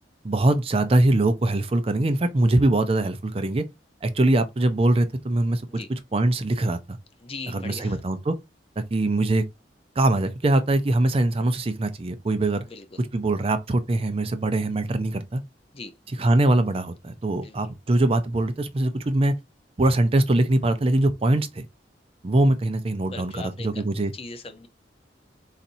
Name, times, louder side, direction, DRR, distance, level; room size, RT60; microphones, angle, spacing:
voice 1, 0.2-3.6 4.0-7.0 7.5-8.4 8.8-9.4 10.0-12.6 13.0-15.4 16.2-19.3 19.8-21.6 22.2-24.1, right 2 dB, 35° right, 0.5 m, -22 dB
voice 2, 7.2-8.0 12.7-13.0 15.7-15.9 17.4-17.7 23.1-23.7 24.1-24.7, left 3 dB, 35° left, 0.7 m, -39 dB
4.1 x 4.1 x 2.6 m
head